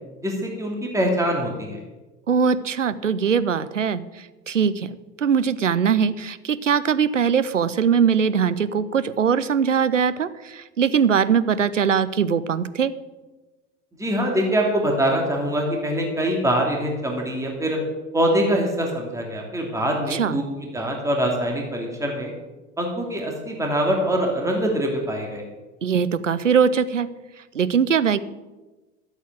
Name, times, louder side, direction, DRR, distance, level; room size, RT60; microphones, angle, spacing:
voice 1, 0.2-1.8 14.0-17.8 18.1-22.3 22.8-25.4, equal, 10° right, 0 dB, 2.9 m, -24 dB
voice 2, 2.3-12.9 20.1-20.4 25.8-27.1 27.5-28.2, right 7 dB, 85° right, 15 dB, 0.7 m, -21 dB
13.0 x 8.2 x 7.7 m, 1.2 s
figure-of-eight pair, 75°, 37 cm